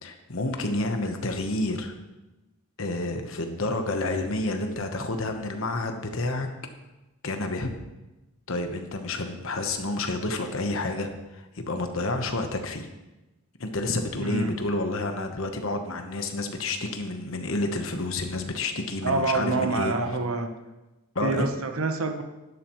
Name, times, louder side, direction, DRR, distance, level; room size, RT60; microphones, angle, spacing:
voice 1, 0.0-1.9 2.8-6.5 7.2-7.7 8.5-12.9 13.6-19.9 21.1-21.5, left 2 dB, 75° left, 5 dB, 1.1 m, -29 dB
voice 2, 14.2-14.5 19.0-20.5 21.2-22.2, right 3 dB, 90° right, 7 dB, 1.1 m, -26 dB
11.5 x 11.0 x 3.1 m, 1.0 s
head